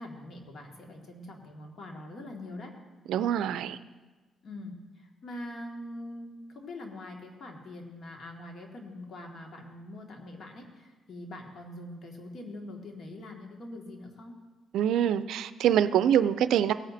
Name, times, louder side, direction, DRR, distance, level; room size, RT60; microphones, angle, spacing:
voice 1, 0.0-2.7 4.4-14.3, left 1 dB, 55° left, 1 dB, 1.9 m, -43 dB
voice 2, 3.1-3.8 14.7-16.7, right 10 dB, 80° right, 13 dB, 0.4 m, -25 dB
17.0 x 9.2 x 2.7 m, 1.2 s
cardioid pair, 90°, 0 cm